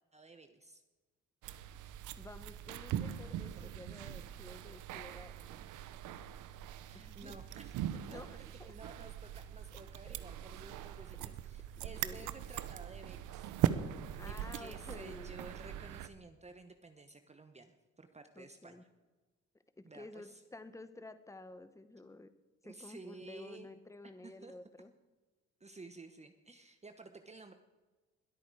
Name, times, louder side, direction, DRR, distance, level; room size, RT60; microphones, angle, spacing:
voice 1, 0.1-0.8 3.6-3.7 6.9-13.5 14.3-18.8 19.8-20.4 22.6-23.7 24.2-24.5 25.6-27.5, right 3 dB, 20° right, 7 dB, 1.0 m, -53 dB
sound 1, 1.4-16.1, right 11 dB, 90° right, 0.8 m, -40 dB
voice 2, 2.2-5.6 6.9-7.4 8.1-8.8 10.1-10.2 11.2-11.4 11.8-12.3 14.2-15.3 18.3-18.8 19.8-22.3 22.6-24.9, left 2 dB, 10° left, 11 dB, 1.1 m, -52 dB
21.5 x 8.7 x 4.8 m, 1.2 s
cardioid pair, 90°, 30 cm